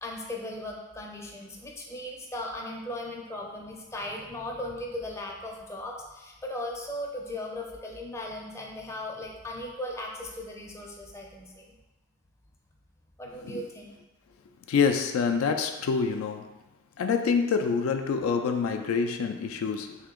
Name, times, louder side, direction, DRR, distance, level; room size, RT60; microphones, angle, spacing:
voice 1, 0.0-11.7 13.2-14.0, left 1 dB, 15° left, -1 dB, 0.5 m, -37 dB
voice 2, 14.7-16.5 17.0-20.0, left 5 dB, 85° left, 6 dB, 0.3 m, -26 dB
3.3 x 2.8 x 3.6 m, 1.1 s
head